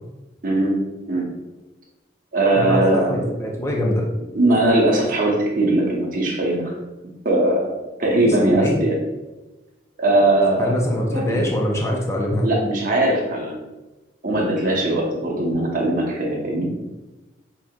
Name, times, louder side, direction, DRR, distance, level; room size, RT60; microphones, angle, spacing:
voice 1, 0.4-0.7 1.1-1.2 2.3-3.3 4.3-6.7 7.0-7.7 8.0-9.0 10.0-10.8 11.1-11.5 12.4-13.6 14.2-16.7, right 1 dB, 45° right, -3 dB, 1.0 m, -20 dB
voice 2, 2.6-4.1 8.2-8.8 10.6-12.5, left 1 dB, 15° left, -1 dB, 0.5 m, -23 dB
6.3 x 2.9 x 2.4 m, 1.1 s
head